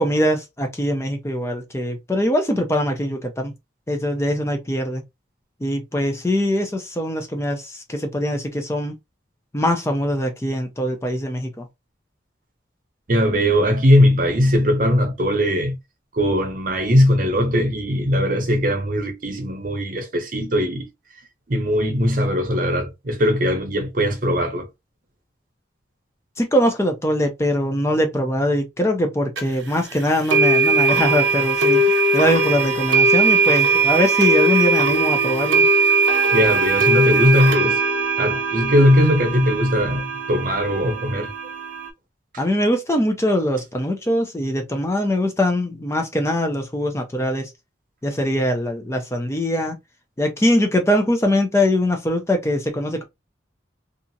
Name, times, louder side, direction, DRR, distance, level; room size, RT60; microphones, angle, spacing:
voice 1, 0.0-3.5 3.9-5.0 5.6-8.9 9.5-11.7 26.4-35.7 42.4-47.5 48.0-49.8 50.2-53.0, equal, 15° left, 0.4 m, -22 dB
voice 2, 13.1-15.8 16.1-20.9 21.5-24.7 36.3-37.8 38.2-41.3, equal, 45° right, 0.7 m, -19 dB
sound 1, 29.4-29.5 30.3-41.9, right 3 dB, 80° right, 0.6 m, -19 dB
2.8 x 2.4 x 2.6 m
head